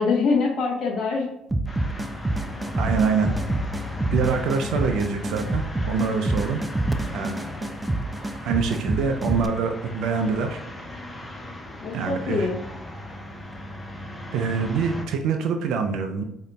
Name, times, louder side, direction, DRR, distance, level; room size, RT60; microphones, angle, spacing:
voice 1, 0.0-1.3 11.8-12.6, left 4 dB, 60° left, -2 dB, 0.7 m, -24 dB
sound 1, 1.5-9.5, right 2 dB, 15° right, 0.4 m, -27 dB
sound 2, 1.7-15.1, left 1 dB, 15° left, 0.9 m, -37 dB
voice 2, 2.8-3.3 4.1-6.6 7.1-7.3 8.4-10.6 11.9-12.5 14.3-16.2, right 5 dB, 75° right, 5 dB, 0.4 m, -25 dB
4.9 x 2.7 x 2.2 m, 0.84 s
supercardioid pair, 65°, 0 cm